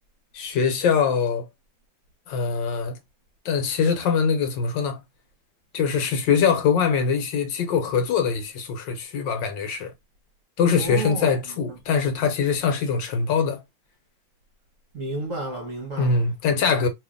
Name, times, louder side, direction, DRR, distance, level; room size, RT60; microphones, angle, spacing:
voice 1, 0.3-1.5 2.3-3.0 3.4-5.0 5.7-9.9 10.6-13.6 16.0-16.9, left 6 dB, 75° left, 1.4 m, -23 dB
voice 2, 10.7-11.4 11.7-11.8 14.9-16.2 16.6-16.8, right 2 dB, 55° right, 1.0 m, -32 dB
2.8 x 2.8 x 3.6 m
omnidirectional pair, 2.2 m